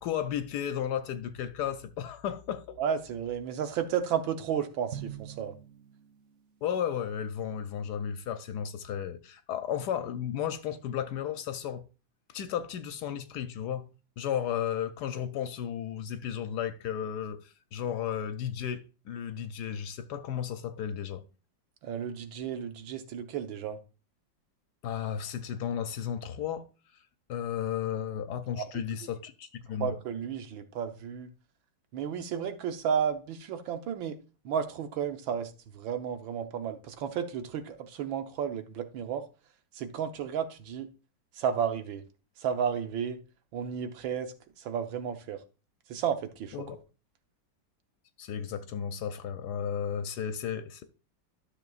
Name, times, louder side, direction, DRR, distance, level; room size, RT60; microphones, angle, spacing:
voice 1, 0.0-2.8 6.6-11.9 12.3-13.9 14.2-21.2 24.8-26.7 27.3-29.9 46.5-46.8 48.2-50.8, left 9 dB, 70° left, 1.1 m, -34 dB
voice 2, 2.8-5.5 21.8-23.8 28.6-28.8 29.8-31.3 31.9-34.2 34.4-39.2 39.8-40.9 41.4-42.0 42.4-43.2 43.5-44.3 44.6-45.4 45.9-46.6, right 8 dB, 90° right, 1.7 m, -32 dB
Drum, 4.9-6.7, right 9 dB, 60° right, 0.7 m, -44 dB
12.5 x 6.6 x 2.4 m
omnidirectional pair, 2.1 m